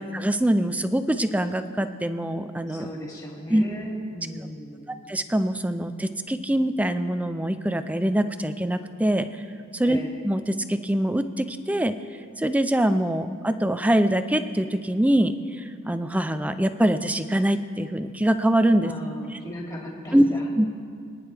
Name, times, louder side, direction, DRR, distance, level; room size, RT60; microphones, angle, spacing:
voice 1, 0.0-2.9 3.5-3.6 5.1-9.3 9.7-10.0 10.2-11.9 12.4-18.9 20.1-20.2 20.6-20.7, right 1 dB, 5° right, 10 dB, 0.4 m, -23 dB
voice 2, 2.7-4.9 9.8-10.2 18.8-20.5, equal, 20° left, -4 dB, 2.8 m, -37 dB
26.0 x 10.0 x 3.4 m, 2.2 s
head